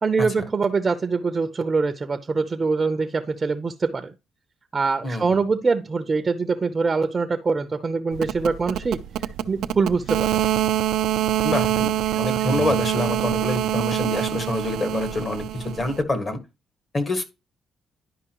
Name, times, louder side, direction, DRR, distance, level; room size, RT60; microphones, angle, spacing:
voice 1, 0.0-4.1 4.7-10.4, right 4 dB, 30° right, 0.6 m, -24 dB
voice 2, 5.0-5.3 11.4-11.9 12.1-16.4 16.9-17.2, left 2 dB, 35° left, 1.6 m, -26 dB
sound 1, 8.1-8.4 8.8-9.0 9.7-12.0 12.4-14.2, left 3 dB, 70° left, 3.2 m, -44 dB
sound 2, 8.1-16.0, right 12 dB, 80° right, 0.4 m, -25 dB
11.0 x 5.3 x 3.0 m
cardioid pair, 90°, 0 cm